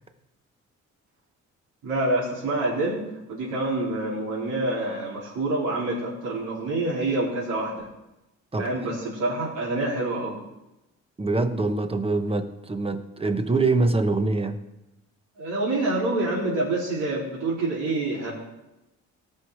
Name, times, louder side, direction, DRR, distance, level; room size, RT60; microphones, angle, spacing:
voice 1, 1.8-3.0 3.3-7.9 8.6-10.4 15.4-18.3, right 2 dB, 80° right, -6 dB, 4.3 m, -27 dB
voice 2, 11.2-14.6, right 3 dB, 20° right, 7 dB, 1.2 m, -24 dB
17.5 x 6.5 x 4.9 m, 0.94 s
cardioid pair, 90°, 30 cm